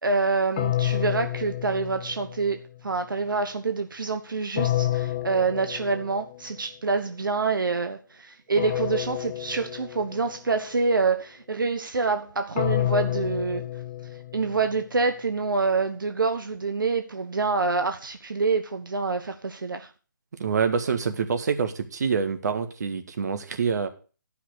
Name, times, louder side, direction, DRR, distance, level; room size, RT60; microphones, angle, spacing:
voice 1, 0.0-2.6 2.8-13.6 14.3-19.9, right 4 dB, 80° right, 1.2 m, -26 dB
sound 1, 0.6-2.6 4.6-6.4 8.6-10.4 12.6-14.8, left 13 dB, 25° left, 0.6 m, -29 dB
voice 2, 20.4-23.9, right 6 dB, 55° right, 1.7 m, -26 dB
12.5 x 5.9 x 6.5 m
figure-of-eight pair, 155°, 11 cm